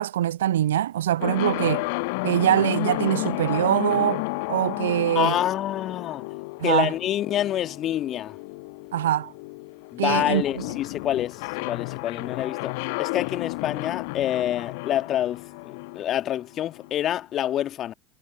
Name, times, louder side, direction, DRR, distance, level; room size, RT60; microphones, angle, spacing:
voice 1, 0.0-1.8 2.2-4.2 4.5-5.3 6.6-6.9 8.9-9.3 10.0-10.4, right 12 dB, 65° right, 0.3 m, -23 dB
sound 1, 1.2-17.0, left 28 dB, 55° left, 1.1 m, -32 dB
voice 2, 5.2-6.3 6.6-8.4 9.9-17.9, left 11 dB, 35° left, 1.8 m, -27 dB
figure-of-eight pair, 75°, 0 cm